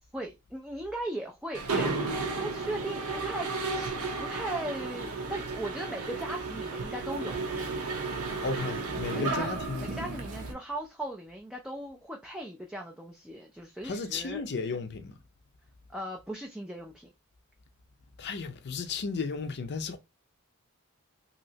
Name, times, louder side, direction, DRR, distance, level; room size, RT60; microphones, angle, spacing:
voice 1, 0.1-3.9 4.2-7.3 9.1-9.5 9.8-14.4 15.9-17.1, right 1 dB, 5° right, 0.4 m, -38 dB
Mechanisms, 1.5-10.5, right 3 dB, 70° right, 0.7 m, -33 dB
voice 2, 8.4-9.9 13.8-15.1 18.2-20.0, left 4 dB, 50° left, 0.5 m, -34 dB
3.1 x 2.8 x 2.7 m
head